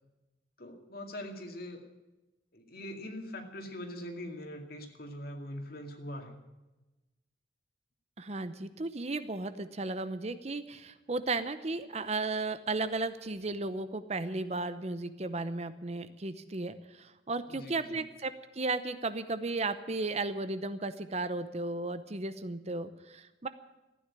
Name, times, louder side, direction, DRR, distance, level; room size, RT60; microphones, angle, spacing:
voice 1, 0.6-1.8 2.5-6.4 17.5-18.0, left 1 dB, 55° left, 5 dB, 2.3 m, -42 dB
voice 2, 8.2-23.5, right 3 dB, 35° right, 12 dB, 0.7 m, -35 dB
15.0 x 9.9 x 9.7 m, 1.0 s
head